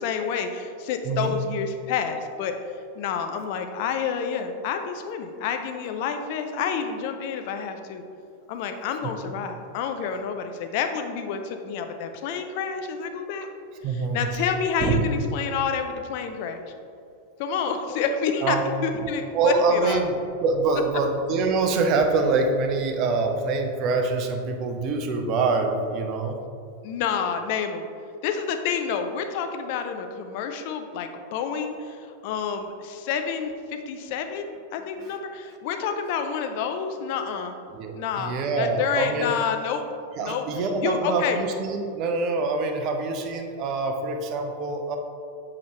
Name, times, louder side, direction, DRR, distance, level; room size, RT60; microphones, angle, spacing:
voice 1, 0.0-2.5 3.0-8.0 8.5-13.5 13.9-16.6 17.4-20.0 26.8-27.9 28.2-37.6 37.9-39.8 40.2-40.4 40.8-41.4, left 6 dB, 45° left, 6 dB, 0.4 m, -29 dB
voice 2, 13.8-14.3 14.8-15.1 18.4-18.6 19.3-20.2 20.4-26.4 37.7-39.3 40.2-45.0, right 3 dB, 40° right, 4 dB, 0.7 m, -25 dB
7.1 x 4.8 x 3.0 m, 2.5 s
figure-of-eight pair, 90°, 0 cm